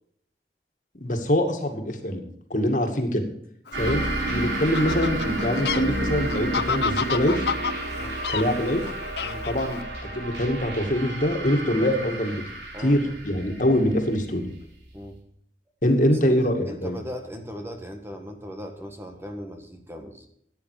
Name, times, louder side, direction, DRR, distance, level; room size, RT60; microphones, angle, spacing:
voice 1, 1.0-2.2 2.5-3.2 3.8-7.4 8.3-8.8 9.5-9.8 10.1-12.4 12.8-14.4 15.8-17.0, equal, 45° left, 4 dB, 2.2 m, -24 dB
Fowl, 3.7-9.8, left 6 dB, 70° left, 0.7 m, -31 dB
sound 1, 3.7-14.9, right 2 dB, 85° right, 4.3 m, -31 dB
voice 2, 12.7-13.2 14.9-15.2 16.2-20.3, equal, 15° right, 4 dB, 1.5 m, -38 dB
15.0 x 9.9 x 5.0 m, 0.70 s
head